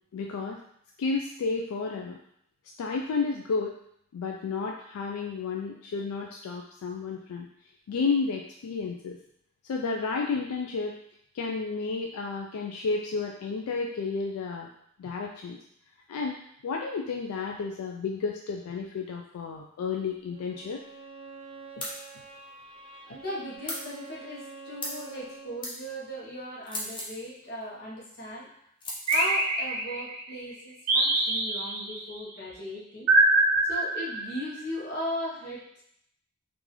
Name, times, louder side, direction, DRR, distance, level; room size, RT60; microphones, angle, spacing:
voice 1, 0.1-0.6 1.0-2.2 2.8-3.7 4.1-7.5 7.9-9.2 9.6-11.0 11.3-14.7 15.0-15.6 16.1-16.4 16.6-20.8, left 4 dB, 75° left, 1 dB, 0.3 m, -31 dB
Bowed string instrument, 20.3-25.7, right 4 dB, 25° right, 0.4 m, -46 dB
sound 1, 21.8-22.0 23.7-23.9 24.8-25.0 25.6-25.8 26.6-27.2 28.8-29.3, left 1 dB, 20° left, 0.6 m, -35 dB
voice 2, 23.1-28.5 29.1-33.1 33.6-35.8, equal, 45° left, -4 dB, 0.9 m, -37 dB
sound 2, 29.1-30.2 30.9-32.0 33.1-34.5, right 2 dB, 90° right, 0.6 m, -24 dB
3.7 x 2.5 x 3.0 m, 0.70 s
head